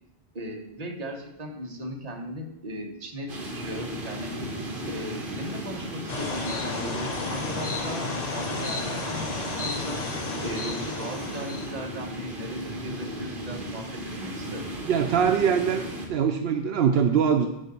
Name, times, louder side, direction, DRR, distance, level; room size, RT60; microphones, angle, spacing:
voice 1, 0.3-4.3 4.9-10.0 10.4-14.8, equal, 40° right, 2 dB, 1.1 m, -37 dB
sound 1, 3.3-16.1, right 1 dB, 55° right, 1.5 m, -36 dB
sound 2, 6.1-11.7, left 3 dB, 40° left, 0.9 m, -33 dB
voice 2, 14.9-15.8 16.1-17.5, right 7 dB, 75° right, 5 dB, 0.8 m, -22 dB
7.5 x 4.0 x 6.7 m, 0.91 s
omnidirectional pair, 1.1 m